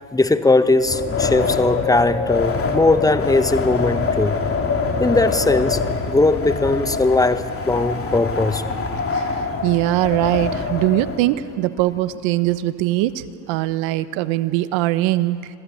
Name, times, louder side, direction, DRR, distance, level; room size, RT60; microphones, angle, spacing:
voice 1, 0.1-4.4 5.0-5.8 6.1-8.7, left 2 dB, 5° left, 11 dB, 1.0 m, -19 dB
Wind, 0.8-11.2, left 4 dB, 25° left, 2.9 m, -24 dB
voice 2, 9.6-15.5, right 15 dB, 65° right, 14 dB, 1.2 m, -21 dB
26.0 x 16.5 x 8.6 m, 2.4 s
supercardioid pair, 100°, 50 cm